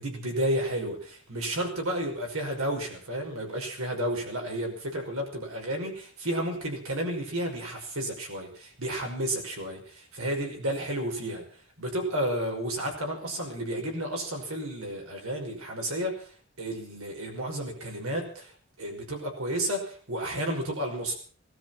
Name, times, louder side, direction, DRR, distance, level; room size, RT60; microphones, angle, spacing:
voice 1, 0.0-11.5 11.8-16.3 16.6-18.5 18.8-21.1, right 1 dB, 75° right, 2 dB, 5.7 m, -32 dB
19.0 x 12.5 x 6.0 m, 0.43 s
head